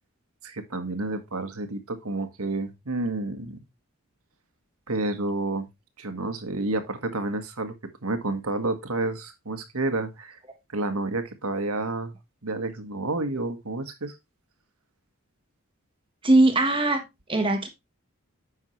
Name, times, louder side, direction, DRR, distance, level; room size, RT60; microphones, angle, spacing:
voice 1, 0.4-3.6 4.9-5.7 6.0-7.7 8.0-10.4 10.7-12.1 12.4-14.1, right 2 dB, 80° right, 1.6 m, -30 dB
voice 2, 16.2-17.0 17.3-17.7, right 2 dB, 25° right, 1.3 m, -20 dB
9.9 x 6.5 x 3.2 m
head